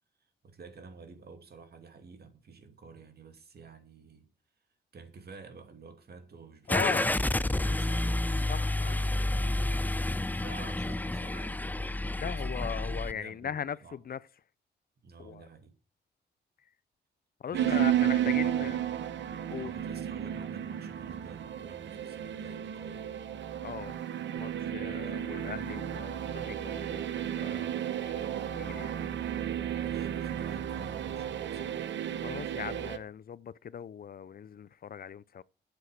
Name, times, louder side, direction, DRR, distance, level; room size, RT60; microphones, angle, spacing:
voice 1, 0.4-4.3 4.9-8.2 10.3-12.2 12.8-14.0 15.0-15.7 17.5-18.8 19.6-23.2 24.7-25.2 27.5-28.0 29.7-31.8, right 4 dB, 60° right, 2.6 m, -50 dB
voice 2, 6.7-7.1 8.5-9.1 12.1-14.2 15.2-15.5 17.4-18.8 19.5-19.7 23.6-24.0 24.3-27.7 28.0-29.0 32.2-35.4, left 8 dB, 55° left, 0.5 m, -39 dB
Car / Engine starting, 6.7-13.1, left 1 dB, 10° left, 0.6 m, -30 dB
sound 1, 17.5-33.0, right 10 dB, 85° right, 1.0 m, -33 dB
8.3 x 7.9 x 6.5 m
cardioid pair, 75°, 18 cm